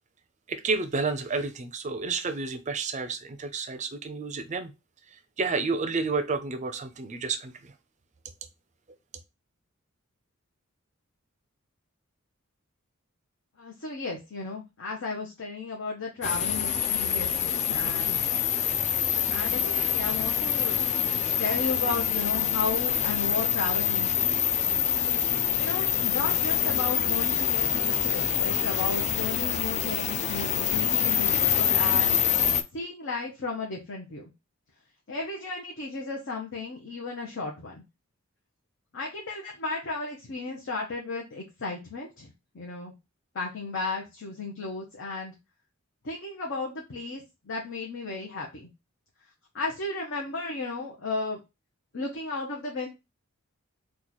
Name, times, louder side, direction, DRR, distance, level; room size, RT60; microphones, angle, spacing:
voice 1, 0.5-4.7 5.1-7.7, right 4 dB, 35° right, 8 dB, 0.5 m, -30 dB
voice 2, 13.6-18.3 19.3-24.5 25.6-32.2 32.7-34.3 35.1-37.8 38.9-42.9 43.3-45.3 46.0-48.7 49.5-51.4 51.9-52.9, left 3 dB, 65° left, -1 dB, 0.8 m, -34 dB
sound 1, 16.2-32.6, left 9 dB, 35° left, 0.3 m, -26 dB
3.0 x 2.4 x 3.9 m, 0.25 s
head